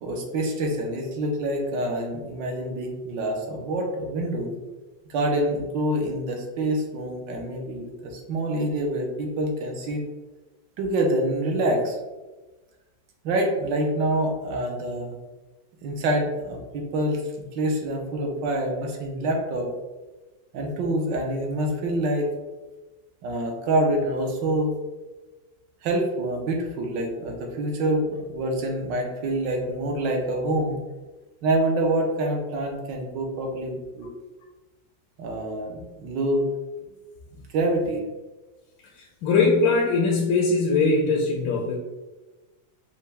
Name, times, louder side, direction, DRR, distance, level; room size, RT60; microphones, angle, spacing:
voice 1, 0.0-4.5 5.1-10.0 10.8-12.0 13.2-15.2 15.8-17.2 17.5-19.7 20.5-22.3 23.2-24.7 25.8-30.8 31.4-34.1 35.2-36.5 37.5-38.0, right 1 dB, 70° right, 1 dB, 1.3 m, -26 dB
voice 2, 39.2-41.8, left 3 dB, 75° left, -2 dB, 1.3 m, -21 dB
5.5 x 2.2 x 3.3 m, 1.2 s
omnidirectional pair, 2.1 m